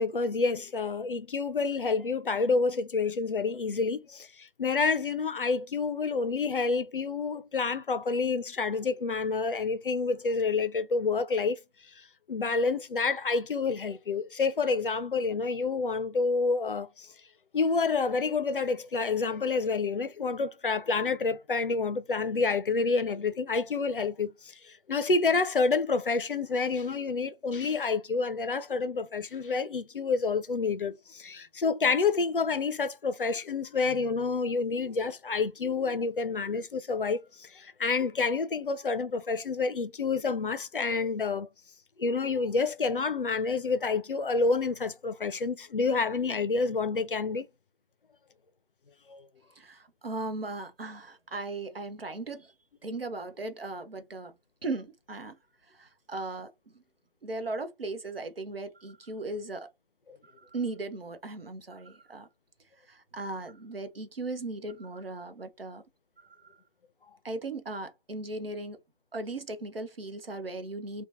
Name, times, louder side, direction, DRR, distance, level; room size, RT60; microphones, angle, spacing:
voice 1, 0.0-11.6 12.3-17.1 17.5-24.5 24.9-41.5 42.0-47.5 49.1-49.2, left 4 dB, 65° left, 0.4 m, -28 dB
voice 2, 49.6-52.5 52.8-54.3 54.6-55.4 55.7-56.8 57.2-59.7 60.2-62.3 62.8-65.8 66.2-66.6 67.2-68.8 69.1-71.1, right 2 dB, 80° right, 0.7 m, -37 dB
2.8 x 2.2 x 2.4 m
figure-of-eight pair, 160°, 29 cm